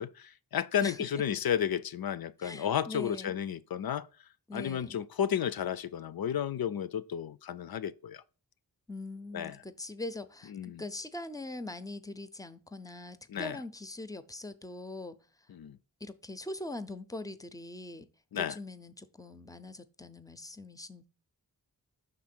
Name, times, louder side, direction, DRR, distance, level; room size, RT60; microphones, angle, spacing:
voice 1, 0.0-4.1 4.5-8.2 9.3-9.5 10.5-10.8 13.3-13.6 15.5-15.8 18.3-18.6, left 9 dB, 70° left, 0.5 m, -32 dB
voice 2, 2.4-3.3 4.5-5.0 8.9-15.2 16.0-18.1 18.3-21.1, left 2 dB, 10° left, 0.5 m, -42 dB
5.9 x 3.7 x 5.9 m
wide cardioid pair, 65°, 38 cm